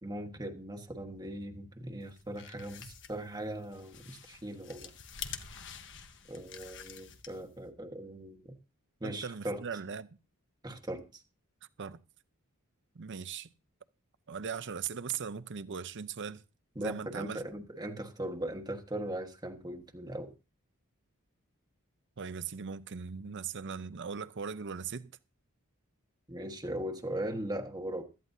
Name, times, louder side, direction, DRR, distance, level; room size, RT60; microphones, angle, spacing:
voice 1, 0.0-4.9 6.3-8.5 9.0-9.6 10.6-11.2 16.7-20.3 26.3-28.0, right 1 dB, 20° right, 1.3 m, -39 dB
sound 1, 2.1-7.6, left 7 dB, 60° left, 1.2 m, -47 dB
voice 2, 9.0-10.1 11.8-12.0 12.9-13.5 14.3-16.4 16.8-17.4 22.2-25.1, right 6 dB, 55° right, 0.7 m, -39 dB
17.0 x 13.0 x 2.7 m
head